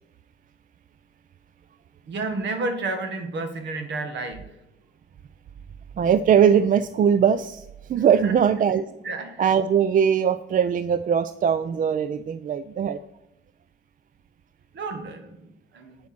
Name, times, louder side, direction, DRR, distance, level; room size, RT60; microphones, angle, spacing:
voice 1, 2.1-4.5 8.0-8.4 9.0-9.5 14.7-16.0, right 3 dB, 65° right, 6 dB, 1.8 m, -31 dB
voice 2, 6.0-7.6 7.9-8.8 9.4-13.0, right 8 dB, 45° right, 13 dB, 0.4 m, -20 dB
8.8 x 7.1 x 6.0 m, 0.90 s
cardioid pair, 90°, 20 cm